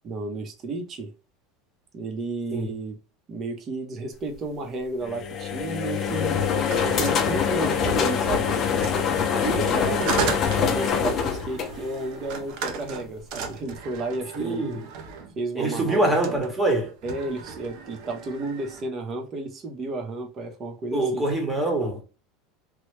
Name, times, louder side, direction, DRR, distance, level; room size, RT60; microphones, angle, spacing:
voice 1, 0.0-1.1 1.9-2.9 3.3-6.4 6.8-8.5 9.5-10.0 10.5-14.6 15.4-16.0 16.3-16.4 17.0-21.2, right 2 dB, 30° right, 0.9 m, -32 dB
sound 1, 5.0-12.3, left 6 dB, 35° left, 0.7 m, -24 dB
sound 2, 6.5-8.1 8.7-15.4 16.1-16.5 16.9-18.9, right 6 dB, 60° right, 0.6 m, -35 dB
voice 2, 9.4-10.3 14.3-14.8 15.5-17.0 20.9-22.0, right 2 dB, 10° right, 1.1 m, -25 dB
3.1 x 2.3 x 3.2 m
supercardioid pair, 145°, 0 cm